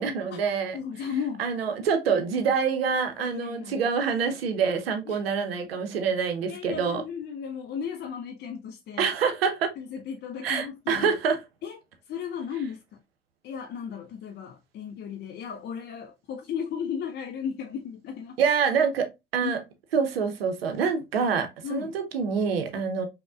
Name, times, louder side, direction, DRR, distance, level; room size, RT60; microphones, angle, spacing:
voice 1, 0.0-1.1 1.4-7.0 9.0-9.8 10.4-11.4 18.4-19.6 19.9-23.1, right 6 dB, 80° right, 0.6 m, -26 dB
voice 2, 0.7-1.5 3.2-3.8 5.1-5.2 6.5-9.1 9.8-11.2 11.6-11.8 12.1-13.0 13.4-18.4 19.4-19.5 21.6-21.9, left 7 dB, 35° left, 0.4 m, -35 dB
5.1 x 2.1 x 2.4 m
figure-of-eight pair, 50°, 29 cm